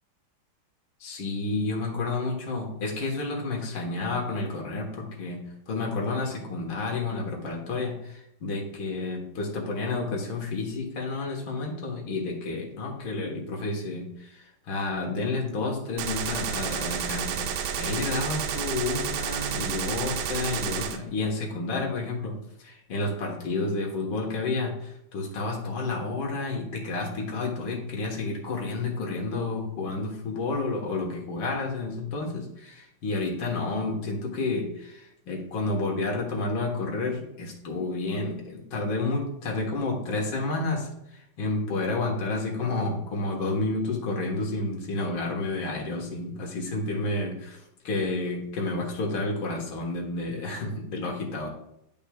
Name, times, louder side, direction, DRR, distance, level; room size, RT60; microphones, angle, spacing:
voice 1, 1.0-5.4 5.7-51.5, left 3 dB, 75° left, 0 dB, 2.1 m, -30 dB
Gunshot gunfire, 16.0-21.0, right 8 dB, 80° right, 1.4 m, -30 dB
10.5 x 5.4 x 2.3 m, 0.79 s
omnidirectional pair, 2.2 m